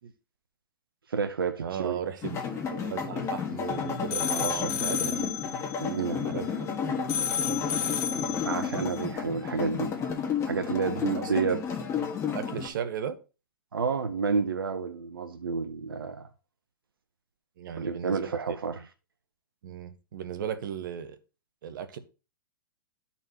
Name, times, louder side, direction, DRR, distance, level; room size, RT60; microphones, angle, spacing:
voice 1, 1.1-2.0 4.3-4.7 5.8-6.2 8.4-9.9 10.5-11.6 13.7-16.3 17.7-18.8, right 5 dB, 90° right, 0.7 m, -30 dB
voice 2, 1.6-2.4 2.7-5.3 6.2-6.7 7.4-7.8 11.2-11.3 12.3-13.2 17.6-18.4 19.6-21.2 21.6-22.0, right 8 dB, 65° right, 1.0 m, -36 dB
sound 1, 2.2-12.7, left 6 dB, 25° left, 1.5 m, -32 dB
sound 2, 3.7-6.8 7.1-9.0, left 8 dB, 55° left, 0.9 m, -33 dB
13.0 x 4.3 x 2.9 m
hypercardioid pair, 120°, 12 cm